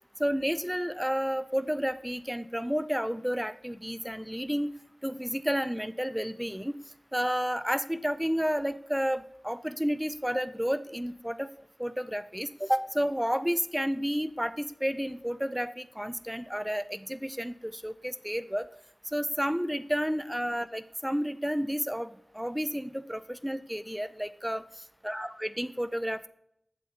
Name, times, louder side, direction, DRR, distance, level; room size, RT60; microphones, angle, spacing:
voice 1, 0.2-4.7 5.0-6.7 7.1-11.5 11.8-18.7 19.1-24.6 25.0-26.3, equal, 5° right, 14 dB, 0.5 m, -31 dB
8.3 x 7.4 x 4.1 m, 0.74 s
cardioid pair, 40°, 0 cm